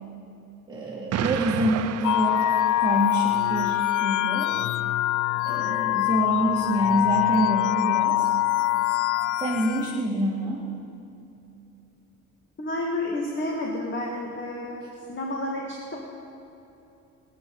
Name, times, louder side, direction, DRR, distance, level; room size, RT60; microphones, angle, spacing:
voice 1, 0.7-1.7 2.0-2.5 2.8-4.5 5.5-8.3 9.4-10.7, right 1 dB, 15° right, -5 dB, 1.9 m, -26 dB
Explosion, 1.1-3.3, right 9 dB, 60° right, 0.6 m, -32 dB
sound 1, 2.0-10.0, left 14 dB, 85° left, 0.5 m, -24 dB
voice 2, 12.6-14.8 15.1-16.0, left 1 dB, 40° left, -1 dB, 1.9 m, -30 dB
22.5 x 8.4 x 4.7 m, 2.9 s
cardioid pair, 90°, 30 cm